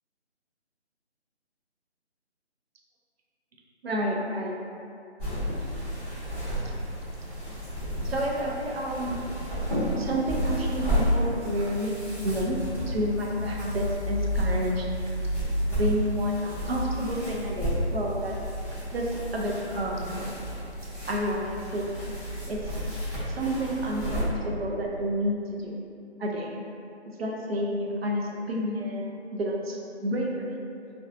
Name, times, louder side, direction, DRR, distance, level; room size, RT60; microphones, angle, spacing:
voice 1, 3.8-4.6 8.0-9.2 10.0-11.9 12.2-12.6 12.9-14.9 15.7-18.3 18.9-20.2 21.1-21.9 22.5-22.8 23.3-25.8 26.2-26.5 27.2-30.5, equal, 60° right, -2 dB, 0.5 m, -30 dB
sound 1, 5.2-24.2, equal, 25° right, 0.8 m, -31 dB
2.5 x 2.2 x 2.5 m, 2.6 s
figure-of-eight pair, 175°, 34 cm